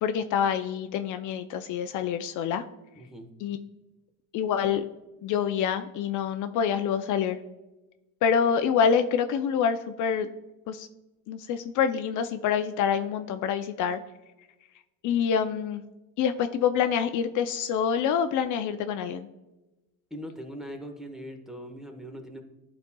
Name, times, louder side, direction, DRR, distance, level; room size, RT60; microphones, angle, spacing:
voice 1, 0.0-2.6 3.4-3.6 4.3-4.8 5.2-7.4 8.2-10.3 10.7-10.9 11.3-14.0 15.0-15.8 16.2-19.3, left 7 dB, 60° left, 9 dB, 0.5 m, -26 dB
voice 2, 3.0-3.3 20.1-22.4, equal, ahead, 2 dB, 1.0 m, -40 dB
10.5 x 4.2 x 2.2 m, 1.0 s
supercardioid pair, 100°, 34 cm